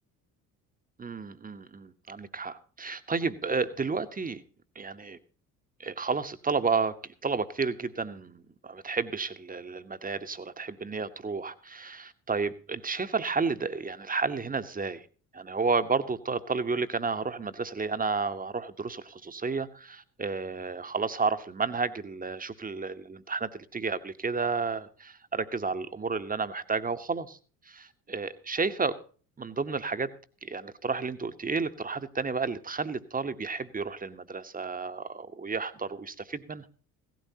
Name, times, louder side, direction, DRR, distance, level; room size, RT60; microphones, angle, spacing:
voice 1, 1.0-4.4 4.7-5.2 5.8-6.9 7.2-15.0 15.3-27.4 27.7-29.0 29.4-30.1 30.4-36.6, right 4 dB, 20° right, 11 dB, 1.2 m, -31 dB
17.0 x 13.5 x 2.9 m, 0.39 s
figure-of-eight pair, 55°, 47 cm